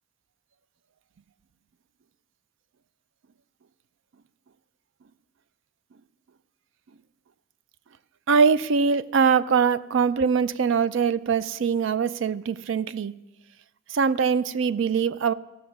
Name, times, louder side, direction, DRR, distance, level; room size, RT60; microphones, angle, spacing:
voice 1, 8.3-13.1 13.9-15.3, right 6 dB, 70° right, 16 dB, 0.4 m, -22 dB
16.0 x 6.3 x 5.8 m, 1.0 s
head